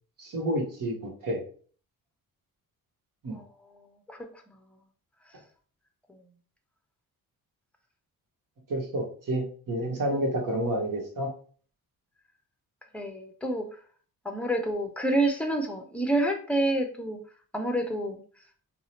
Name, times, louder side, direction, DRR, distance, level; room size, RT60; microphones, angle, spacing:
voice 1, 0.2-1.0 1.2-1.4 3.2-3.4 8.7-11.3, right 1 dB, 45° right, 0 dB, 1.0 m, -29 dB
voice 2, 3.7-4.2 4.5-4.8 6.1-6.2 12.9-13.7 14.2-17.2 17.5-18.2, right 1 dB, 5° left, 4 dB, 0.7 m, -28 dB
2.7 x 2.0 x 2.8 m, 0.43 s
hypercardioid pair, 40°, 44 cm